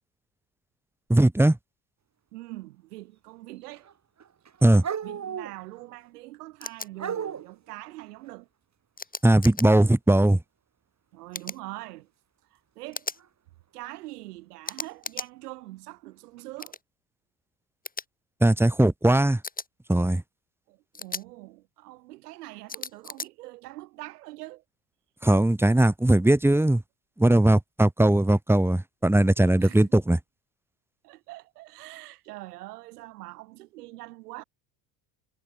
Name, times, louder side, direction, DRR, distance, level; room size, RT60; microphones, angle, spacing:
voice 1, 1.1-1.6 4.6-4.8 9.2-10.4 18.4-19.4 19.9-20.2 25.2-26.8 27.2-30.2, right 1 dB, 5° right, 1.7 m, -19 dB
voice 2, 2.3-3.9 5.0-8.5 11.1-12.1 12.5-13.1 13.7-16.8 20.7-24.6 29.6-30.0 31.0-34.4, right 19 dB, 85° right, 5.8 m, -43 dB
sound 1, 3.5-3.9 4.2-6.0 6.9-7.5 11.7-12.0 13.2-13.3 15.4-15.5 16.4-16.6, right 8 dB, 35° right, 5.0 m, -35 dB
sound 2, 6.6-6.9 9.0-9.7 11.3-11.6 12.9-13.2 14.6-15.3 16.6-16.8 17.8-18.0 19.4-19.7 20.9-21.2 22.7-23.3, left 4 dB, 20° left, 3.5 m, -36 dB
supercardioid pair, 80°, 45 cm